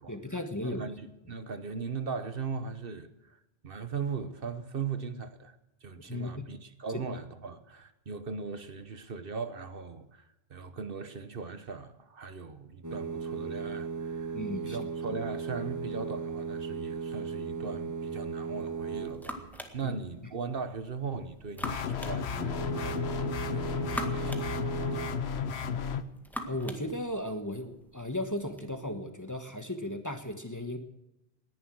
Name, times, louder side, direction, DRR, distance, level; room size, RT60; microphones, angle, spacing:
voice 1, 0.1-0.8 6.1-6.3 14.3-14.9 19.8-19.9 26.5-30.8, left 1 dB, 15° left, 1.3 m, -35 dB
voice 2, 0.6-5.6 5.8-14.4 14.6-19.4 19.7-23.2 23.5-25.4, right 5 dB, 60° right, 1.2 m, -39 dB
sound 1, 12.8-19.6 22.3-25.1, right 5 dB, 20° right, 0.9 m, -37 dB
sound 2, 18.6-28.7, equal, ahead, 1.8 m, -45 dB
sound 3, 21.6-26.0, left 6 dB, 80° left, 1.2 m, -33 dB
19.0 x 11.0 x 6.3 m
omnidirectional pair, 1.1 m